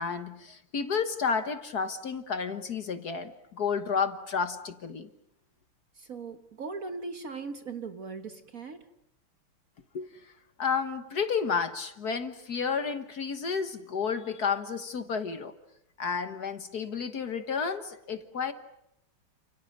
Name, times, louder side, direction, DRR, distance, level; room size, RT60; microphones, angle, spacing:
voice 1, 0.0-5.1 9.9-10.3 10.6-15.5 16.0-18.5, left 6 dB, 50° left, 9 dB, 1.7 m, -31 dB
voice 2, 6.0-8.9, right 4 dB, 45° right, 8 dB, 1.5 m, -39 dB
30.0 x 27.5 x 6.6 m, 0.78 s
omnidirectional pair, 2.3 m